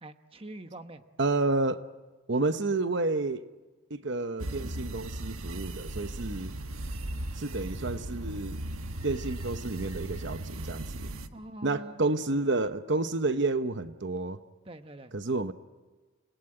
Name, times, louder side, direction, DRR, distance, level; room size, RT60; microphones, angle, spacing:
voice 1, 0.0-1.0 11.3-12.1 14.6-15.1, right 1 dB, 25° right, 8 dB, 1.1 m, -44 dB
voice 2, 1.2-1.9 2.3-3.5 3.9-6.5 7.3-8.6 9.0-11.1 11.6-14.4 15.1-15.5, right 3 dB, 55° right, 10 dB, 0.9 m, -30 dB
sound 1, 4.4-11.3, right 1 dB, 85° right, 1.3 m, -37 dB
29.5 x 19.0 x 8.9 m, 1.2 s
head